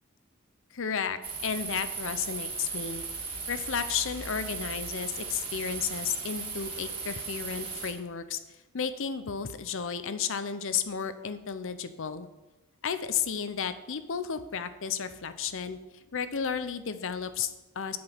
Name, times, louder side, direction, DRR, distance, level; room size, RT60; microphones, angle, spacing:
voice 1, 0.7-3.0 3.5-8.4 8.7-12.3 12.8-15.8 16.1-18.0, left 7 dB, 65° left, 11 dB, 0.7 m, -33 dB
sound 1, 1.2-7.9, right 4 dB, 25° right, 2.2 m, -37 dB
8.6 x 6.1 x 7.1 m, 1.1 s
head